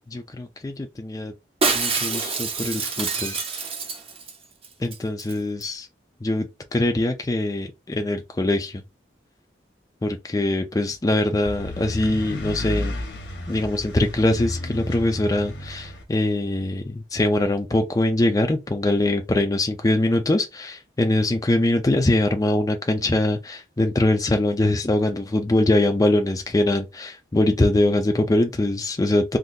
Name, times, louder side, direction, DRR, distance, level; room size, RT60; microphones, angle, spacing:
voice 1, 0.1-1.3 1.7-3.4 4.8-5.9 6.2-6.5 6.7-8.8 10.0-12.9 13.5-29.4, left 1 dB, 20° left, 0.4 m, -22 dB
Shatter, 1.6-4.4 4.6-4.7 4.9-5.3 5.6-5.7, right 4 dB, 35° right, 0.8 m, -26 dB
sound 1, 11.4-16.0, left 1 dB, 75° left, 1.1 m, -32 dB
3.8 x 2.7 x 2.6 m
head